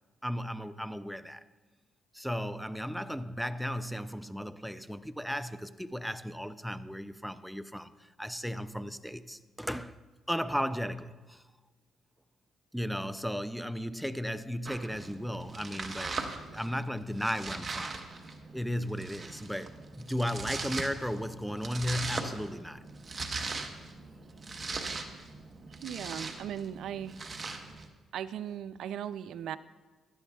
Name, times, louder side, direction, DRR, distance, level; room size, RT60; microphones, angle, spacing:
voice 1, 0.2-1.4 2.1-7.9 8.2-10.0 10.3-11.4 12.7-16.2 16.5-17.9 18.5-22.8, equal, ahead, 0.4 m, -35 dB
Domestic sounds home sounds, 14.6-27.9, right 3 dB, 35° right, 1.1 m, -40 dB
voice 2, 25.8-27.2 28.1-29.6, right 9 dB, 75° right, 0.3 m, -38 dB
17.0 x 11.5 x 2.3 m
cardioid pair, 90°, 0 cm